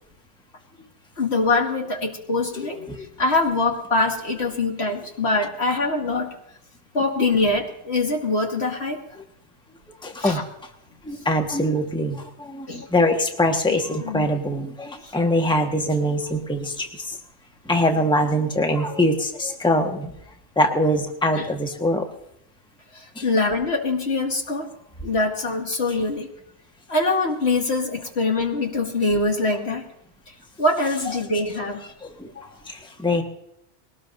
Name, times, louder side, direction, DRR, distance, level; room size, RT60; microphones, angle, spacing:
voice 1, 1.2-6.3 6.9-9.0 10.2-10.4 12.7-12.9 13.7-14.3 15.0-15.1 21.3-21.5 22.9-24.7 25.0-26.3 26.9-29.8 30.3-31.8 32.3-32.5, left 2 dB, 65° left, 1 dB, 2.5 m, -24 dB
voice 2, 2.5-3.1 9.9-10.4 11.0-17.2 17.6-20.1 20.5-22.1 23.1-23.3 32.0-32.3 32.6-33.2, left 1 dB, 5° left, 3 dB, 1.4 m, -23 dB
21.0 x 18.5 x 2.7 m, 0.78 s
omnidirectional pair, 1.2 m